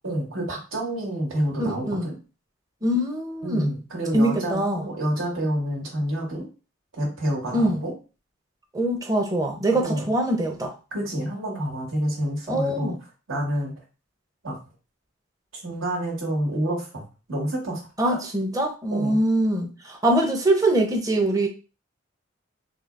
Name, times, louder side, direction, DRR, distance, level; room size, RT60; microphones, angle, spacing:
voice 1, 0.0-2.1 3.4-6.5 6.9-7.9 9.7-10.1 10.9-12.9 13.3-13.7 14.4-14.5 15.6-17.0 17.3-18.2 18.9-19.2, right 1 dB, 80° right, 1.8 m, -28 dB
voice 2, 1.7-2.1 2.8-3.7 4.1-4.8 7.5-7.8 8.7-10.7 12.5-13.0 18.0-21.5, right 1 dB, 15° right, 0.6 m, -23 dB
4.2 x 2.8 x 2.4 m
head